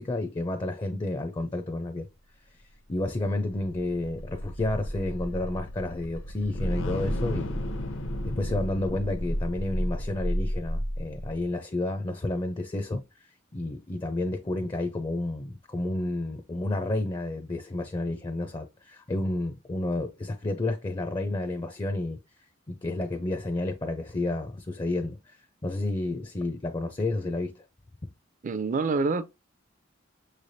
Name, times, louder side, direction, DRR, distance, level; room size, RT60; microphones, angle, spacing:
voice 1, 0.0-2.1 2.9-7.6 8.2-13.0 13.5-22.2 22.7-25.2 25.6-27.6, left 2 dB, 25° left, 0.5 m, -30 dB
sound 1, 3.0-11.4, equal, 75° left, 0.9 m, -32 dB
voice 2, 28.4-29.2, right 4 dB, 40° right, 0.4 m, -26 dB
6.2 x 3.3 x 2.6 m
head